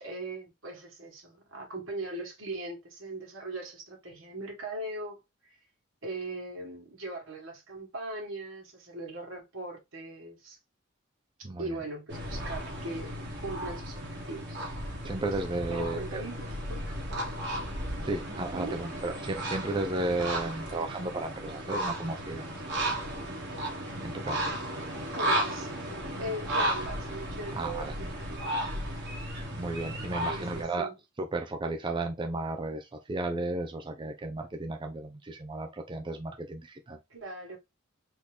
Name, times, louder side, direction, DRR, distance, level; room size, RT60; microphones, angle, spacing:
voice 1, 0.0-5.2 5.5-5.6 6.0-10.6 11.6-14.7 15.7-17.0 18.5-18.8 25.1-25.7 26.2-28.1 30.2-30.9 37.1-37.6, right 2 dB, 75° right, 1.9 m, -39 dB
voice 2, 11.4-11.8 15.0-16.2 18.0-22.5 24.0-24.6 27.5-27.9 29.6-30.9 31.2-37.0, right 2 dB, 25° right, 0.5 m, -34 dB
sound 1, 12.1-30.6, right 1 dB, 60° right, 1.4 m, -34 dB
4.3 x 3.0 x 3.4 m
head